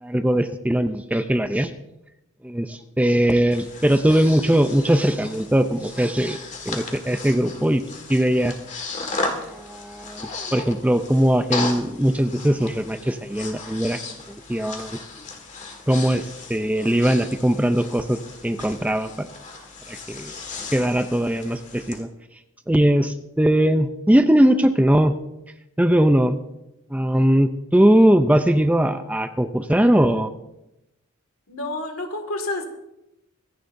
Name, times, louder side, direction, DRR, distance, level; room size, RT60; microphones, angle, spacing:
voice 1, 0.0-1.7 2.4-6.4 6.7-7.8 8.1-8.5 9.4-14.0 14.5-15.0 15.9-16.2 16.5-19.3 19.9-20.3 20.7-22.1 22.7-25.2 25.8-26.4 26.9-30.3, right 1 dB, 5° right, 8 dB, 0.4 m, -20 dB
Breathing, 3.3-22.0, left 3 dB, 35° left, 1.8 m, -36 dB
voice 2, 31.5-32.6, left 2 dB, 70° left, 5 dB, 2.1 m, -29 dB
25.0 x 10.5 x 2.6 m, 0.89 s
head